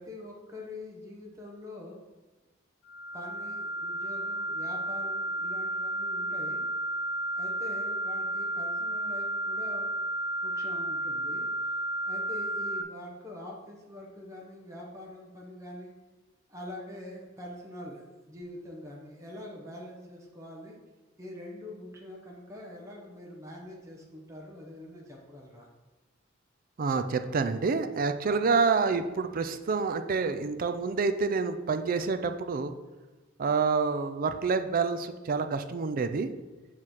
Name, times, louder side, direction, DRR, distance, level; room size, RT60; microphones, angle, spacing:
voice 1, 0.0-2.0 3.1-6.6 7.4-9.9 10.4-11.5 12.0-15.9 16.5-18.0 18.3-20.7 21.2-25.7, left 1 dB, 15° right, -2 dB, 0.9 m, -44 dB
sound 1, 2.9-12.8, right 1 dB, 60° left, 0.4 m, -32 dB
voice 2, 26.8-32.7 33.4-36.3, right 4 dB, 45° right, 9 dB, 0.4 m, -28 dB
7.5 x 3.2 x 5.8 m, 1.2 s
head